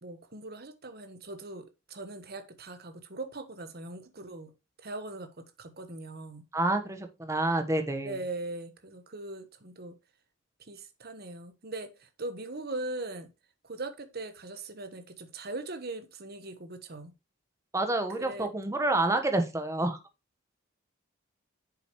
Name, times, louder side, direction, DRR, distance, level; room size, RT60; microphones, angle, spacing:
voice 1, 0.0-4.5 4.8-6.4 8.0-9.9 10.6-13.3 13.6-17.1 18.2-18.5, right 2 dB, 45° right, 1.3 m, -40 dB
voice 2, 6.5-8.2 17.7-20.0, right 2 dB, 15° right, 1.2 m, -28 dB
8.9 x 6.8 x 3.1 m
head